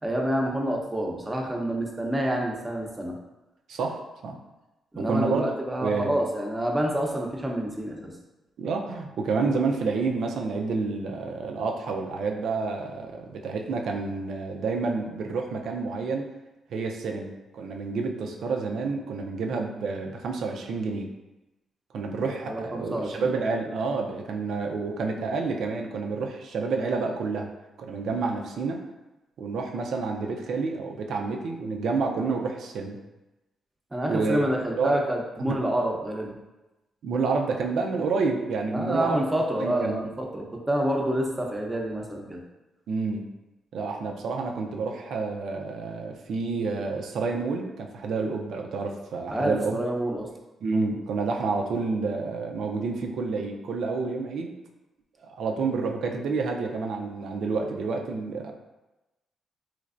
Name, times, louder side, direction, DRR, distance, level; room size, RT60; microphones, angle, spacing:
voice 1, 0.0-3.1 4.9-8.1 22.5-23.3 33.9-36.3 38.7-42.4 49.3-50.3, right 1 dB, 15° right, 0 dB, 0.7 m, -28 dB
voice 2, 3.7-4.4 5.0-5.4 5.8-6.1 8.6-16.3 16.7-21.1 21.9-27.5 27.8-28.8 29.4-33.0 34.1-34.4 34.8-35.0 35.4-35.6 37.0-39.2 39.6-40.0 42.9-43.3 43.7-49.8 50.6-54.5 55.2-58.5, right 4 dB, 75° right, 2 dB, 0.4 m, -29 dB
3.2 x 3.1 x 2.5 m, 1.0 s
cardioid pair, 70°, 0 cm